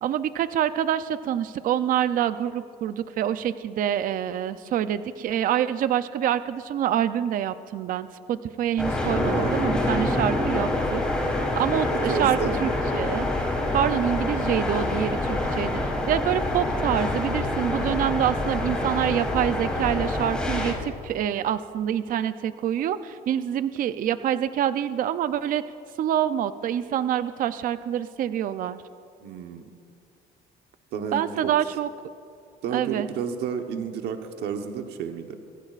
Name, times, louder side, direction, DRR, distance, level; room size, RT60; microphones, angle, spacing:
voice 1, 0.0-11.0 11.5-13.3 13.7-15.8 16.1-25.6 26.0-28.8 31.1-31.9 32.7-33.1, right 10 dB, 55° right, 12 dB, 0.5 m, -26 dB
sound 1, 8.8-20.7, left 1 dB, 5° left, 3.3 m, -26 dB
voice 2, 9.2-9.7 11.9-12.6 29.2-29.6 30.9-31.5 32.6-35.4, right 7 dB, 80° right, 5 dB, 1.1 m, -31 dB
24.5 x 15.5 x 2.5 m, 2.5 s
cardioid pair, 110°, 17 cm